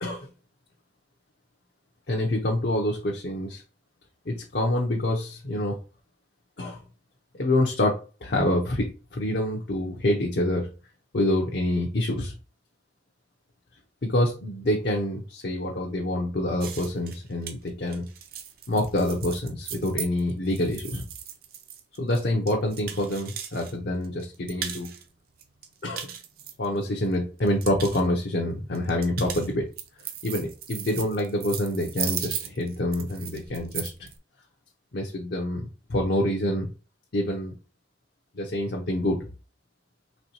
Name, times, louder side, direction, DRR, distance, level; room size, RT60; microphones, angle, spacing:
voice 1, 2.1-3.6 4.3-5.8 6.6-6.8 7.3-10.7 11.1-12.3 14.0-18.0 18.7-21.1 22.0-24.9 25.8-26.1 26.6-29.7 30.2-34.1 34.9-36.7 37.1-37.5 38.3-39.2, left 1 dB, 60° left, 0 dB, 0.7 m, -26 dB
sound 1, 16.6-23.7 24.0-25.0 25.4-27.1 27.4-28.0 28.7-34.1, right 9 dB, 55° right, 0.5 m, -37 dB
4.2 x 3.1 x 3.0 m, 0.34 s
head